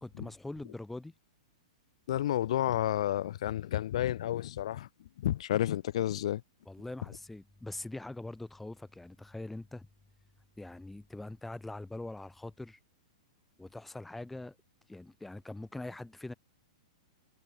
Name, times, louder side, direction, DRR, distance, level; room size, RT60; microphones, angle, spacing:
voice 1, 0.0-1.1 6.7-9.9 10.6-12.8 13.6-14.6 14.9-16.3, left 2 dB, 5° left, 0.5 m, -43 dB
voice 2, 2.1-6.4, left 12 dB, 65° left, 0.6 m, -31 dB
hypercardioid pair, 130°, 3 cm